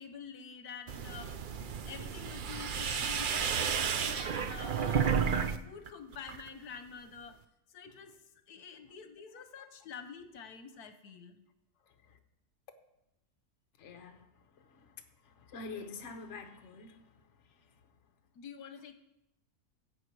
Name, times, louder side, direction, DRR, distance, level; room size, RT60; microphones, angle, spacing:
voice 1, 0.0-1.4 1.9-5.1 5.4-7.4 7.7-8.2 8.5-11.5 18.3-18.9, left 6 dB, 80° left, 1.4 m, -48 dB
sound 1, 0.9-5.6 5.9-6.5, right 7 dB, 70° right, 0.5 m, -32 dB
voice 2, 11.8-12.2 13.8-18.0, left 4 dB, 55° left, 1.2 m, -48 dB
16.0 x 7.9 x 4.6 m
omnidirectional pair, 1.6 m